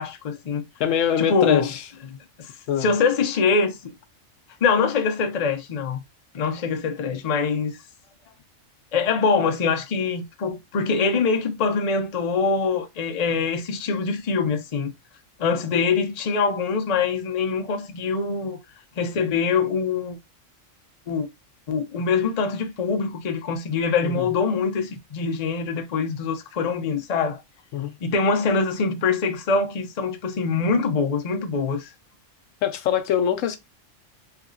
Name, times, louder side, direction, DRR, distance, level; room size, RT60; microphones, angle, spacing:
voice 1, 0.0-0.6 1.2-1.7 2.4-2.5 2.8-3.8 4.6-6.0 6.3-7.8 8.9-14.9 15.4-18.6 19.0-20.2 21.1-21.3 21.7-27.4 28.0-31.9, left 5 dB, 45° left, 0.5 m, -24 dB
voice 2, 0.8-1.8 2.7-2.9 24.0-24.3 27.7-27.9 32.6-33.6, left 9 dB, 85° left, 1.0 m, -23 dB
3.3 x 2.8 x 2.6 m
omnidirectional pair, 1.3 m